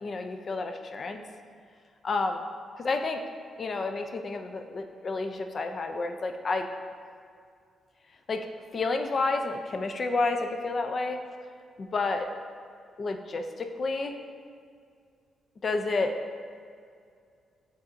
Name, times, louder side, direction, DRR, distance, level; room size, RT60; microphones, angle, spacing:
voice 1, 0.0-1.2 2.0-2.4 2.8-3.2 3.6-6.7 8.3-8.4 8.7-11.2 11.8-12.3 13.0-14.2 15.6-16.2, left 3 dB, 40° left, 6 dB, 0.4 m, -30 dB
9.6 x 3.9 x 2.5 m, 2.3 s
cardioid pair, 135°, 0 cm